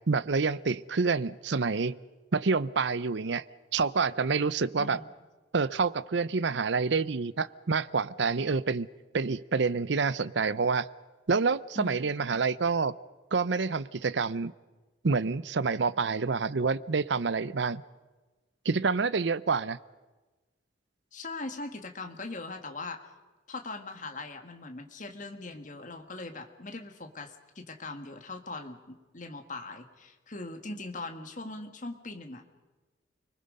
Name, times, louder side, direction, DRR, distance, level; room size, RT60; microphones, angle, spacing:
voice 1, 0.1-2.0 2.3-3.4 3.7-5.0 5.5-8.9 9.1-10.9 11.3-13.0 13.3-14.5 15.0-17.8 18.6-19.8, right 4 dB, 70° right, 17 dB, 0.6 m, -27 dB
voice 2, 11.8-12.1 21.1-23.1 23.5-32.5, left 2 dB, 45° left, 6 dB, 1.8 m, -41 dB
29.5 x 20.5 x 5.4 m, 1.2 s
head